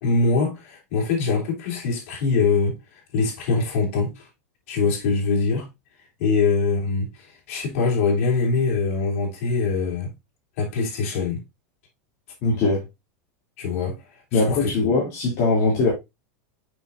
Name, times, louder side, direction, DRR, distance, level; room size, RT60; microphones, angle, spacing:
voice 1, 0.0-2.8 3.1-4.3 4.7-5.7 6.2-10.1 10.6-11.4 13.6-14.0 14.3-14.9, left 4 dB, 60° left, 3.3 m, -23 dB
voice 2, 12.4-12.8 14.3-15.9, left 3 dB, 35° left, 2.7 m, -21 dB
7.2 x 5.8 x 2.5 m
supercardioid pair, 165°, 8 cm